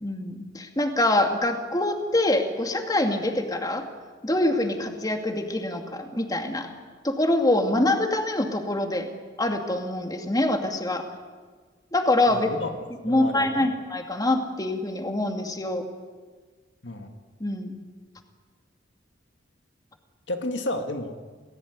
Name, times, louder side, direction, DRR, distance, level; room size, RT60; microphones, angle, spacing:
voice 1, 0.0-3.8 4.2-6.7 7.0-9.1 9.4-11.1 11.9-12.5 13.0-15.8 17.4-17.8, left 1 dB, 20° left, 4 dB, 2.4 m, -25 dB
voice 2, 12.3-12.7 13.0-13.7 16.8-17.1 20.3-21.2, left 1 dB, 70° left, 6 dB, 2.1 m, -31 dB
28.5 x 19.0 x 9.5 m, 1.5 s
head